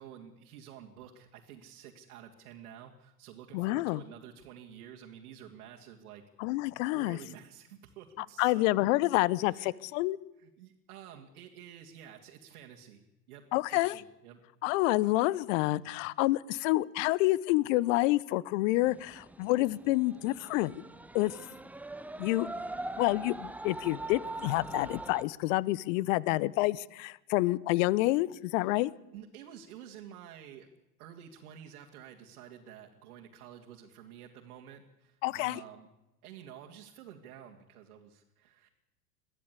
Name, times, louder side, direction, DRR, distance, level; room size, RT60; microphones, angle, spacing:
voice 1, 0.0-6.2 6.9-8.6 9.5-9.7 10.4-14.4 28.6-28.8 29.1-30.7 31.0-35.9 36.2-38.7, right 9 dB, 65° right, 1 dB, 2.4 m, -50 dB
voice 2, 3.5-4.0 6.4-7.2 8.4-10.2 13.5-13.9 14.6-20.8 21.1-21.4 22.2-22.5 23.0-28.9 35.2-35.6, left 19 dB, 55° left, 23 dB, 0.9 m, -28 dB
sound 1, 18.8-25.2, right 2 dB, 5° right, 0.7 m, -42 dB
22.5 x 15.0 x 8.3 m, 0.96 s
hypercardioid pair, 85°, 47 cm